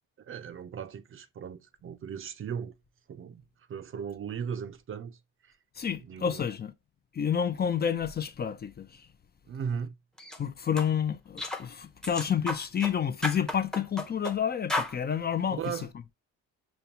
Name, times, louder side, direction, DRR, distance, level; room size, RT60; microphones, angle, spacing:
voice 1, 0.2-2.7 3.1-3.4 3.7-5.2 5.4-5.5 6.1-6.4 9.5-9.9 15.5-15.9, right 7 dB, 45° right, 0.5 m, -37 dB
voice 2, 5.8-6.7 7.1-9.1 10.4-15.6, left 8 dB, 35° left, 0.5 m, -29 dB
sound 1, 10.2-10.4 10.8-10.9 11.4-11.7 12.0-12.9 13.2-14.4 14.7-14.9, left 1 dB, ahead, 0.7 m, -33 dB
5.3 x 2.2 x 2.8 m
cardioid pair, 90°, 30 cm